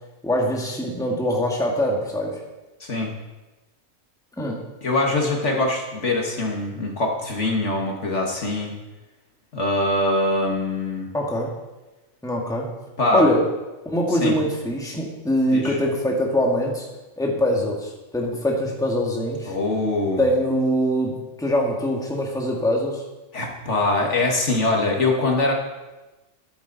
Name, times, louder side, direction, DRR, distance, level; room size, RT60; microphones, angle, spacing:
voice 1, 0.2-2.4 4.4-4.6 11.1-11.6 12.2-12.7 13.1-13.4 13.9-16.9 17.2-19.6 20.2-23.0, equal, 5° left, -1 dB, 1.7 m, -23 dB
voice 2, 4.8-8.7 9.5-11.1 13.0-13.3 14.1-14.3 15.5-15.8 19.5-20.3 23.3-25.5, left 2 dB, 60° left, 0 dB, 2.0 m, -23 dB
13.0 x 10.5 x 4.1 m, 1.1 s
omnidirectional pair, 1.4 m